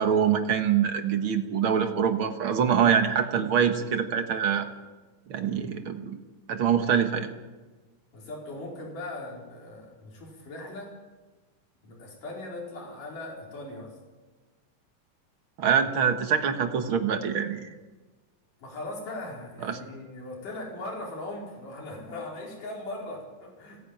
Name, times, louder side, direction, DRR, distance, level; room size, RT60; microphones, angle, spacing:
voice 1, 0.0-4.7 5.3-6.2 6.5-7.3 15.6-17.7 19.6-19.8, right 7 dB, 50° right, 7 dB, 1.7 m, -24 dB
voice 2, 8.1-10.9 11.8-13.9 18.6-23.8, left 2 dB, 80° left, -2 dB, 6.2 m, -39 dB
30.0 x 10.5 x 8.8 m, 1.3 s
omnidirectional pair, 3.7 m